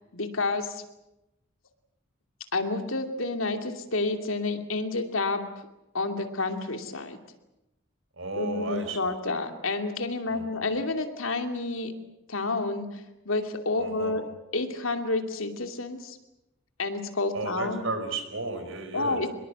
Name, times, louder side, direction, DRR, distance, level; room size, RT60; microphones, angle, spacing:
voice 1, 0.1-0.8 2.5-5.4 5.9-7.2 8.4-11.9 12.3-14.2 14.5-16.2 16.8-17.8 18.9-19.3, left 3 dB, 80° left, 6 dB, 2.7 m, -29 dB
voice 2, 8.2-9.1 10.3-10.6 13.8-14.2 17.3-19.2, right 3 dB, 70° right, 7 dB, 4.5 m, -34 dB
24.5 x 21.5 x 8.1 m, 0.92 s
head